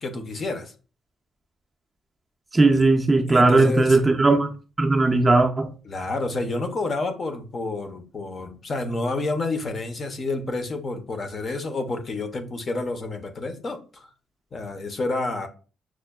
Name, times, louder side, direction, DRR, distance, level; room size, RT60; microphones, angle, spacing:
voice 1, 0.0-0.7 2.7-2.8 3.3-4.0 5.8-14.1 14.5-15.5, left 2 dB, 35° left, 0.5 m, -29 dB
voice 2, 2.5-4.5 4.8-5.7, right 3 dB, 15° right, 0.4 m, -18 dB
6.0 x 2.1 x 2.2 m
cardioid pair, 135°, 0 cm